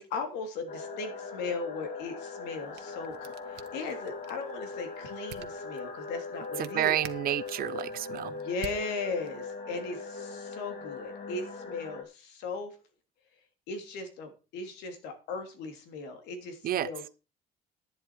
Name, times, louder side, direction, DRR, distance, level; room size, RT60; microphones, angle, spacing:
voice 1, 0.0-7.0 8.1-12.8 13.7-17.1, left 3 dB, 90° left, 3.2 m, -38 dB
sound 1, 0.7-12.0, left 4 dB, 55° left, 3.1 m, -40 dB
sound 2, 2.5-9.6, right 12 dB, 80° right, 1.3 m, -50 dB
voice 2, 6.6-8.3 16.6-16.9, right 12 dB, 60° right, 0.9 m, -30 dB
11.0 x 10.5 x 4.7 m
cardioid pair, 110°, 17 cm